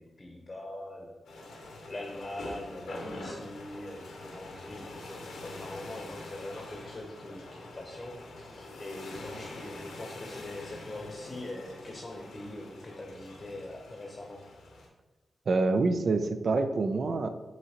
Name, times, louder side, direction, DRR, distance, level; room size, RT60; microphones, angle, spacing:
voice 1, 0.0-1.4 1.9-14.4, left 1 dB, 35° left, 1 dB, 0.7 m, -43 dB
sound 1, 1.2-14.9, left 2 dB, 90° left, 0.8 m, -45 dB
voice 2, 15.5-17.3, right 3 dB, 60° right, 9 dB, 0.4 m, -26 dB
5.6 x 2.8 x 2.8 m, 1.2 s
cardioid pair, 55°, 0 cm